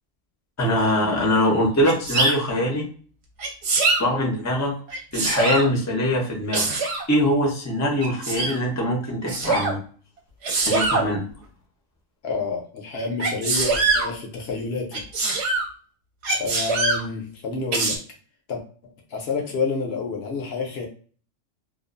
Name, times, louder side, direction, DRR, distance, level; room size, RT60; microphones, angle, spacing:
voice 1, 0.6-2.9 4.0-4.8 5.1-6.7 7.1-9.8 10.7-11.2, equal, 20° left, -1 dB, 0.5 m, -22 dB
Sneeze, 1.8-2.3 3.4-4.0 4.9-5.7 6.5-7.0 8.0-8.5 9.3-9.7 10.4-11.0 13.2-14.1 14.9-15.7 16.2-17.0 17.7-18.0, right 3 dB, 60° right, 0.9 m, -23 dB
voice 2, 12.2-15.0 16.3-18.0 18.5-20.9, left 4 dB, 60° left, 2 dB, 0.8 m, -29 dB
2.4 x 2.3 x 2.5 m, 0.42 s
omnidirectional pair, 1.3 m